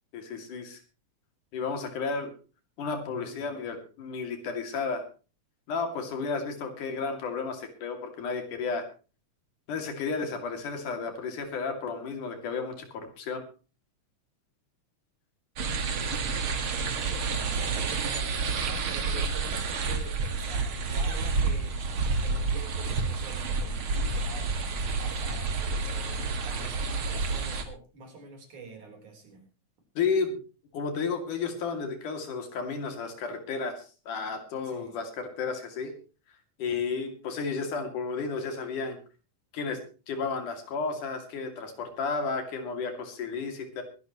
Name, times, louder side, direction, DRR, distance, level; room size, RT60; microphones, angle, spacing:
voice 1, 0.1-0.8 1.5-2.3 2.8-5.1 5.7-8.9 9.7-13.4 30.0-30.4 30.7-35.9 36.6-39.0 39.5-39.8 40.1-43.8, left 4 dB, 80° left, 6 dB, 4.1 m, -32 dB
voice 2, 3.1-3.5 16.8-18.0 18.3-21.9 22.2-24.5 24.9-25.5 25.8-29.5 34.6-35.0, right 3 dB, 70° right, 3 dB, 5.3 m, -46 dB
sound 1, 15.6-27.6, right 4 dB, 50° right, 2.3 m, -29 dB
22.5 x 12.0 x 3.0 m, 0.35 s
omnidirectional pair, 3.5 m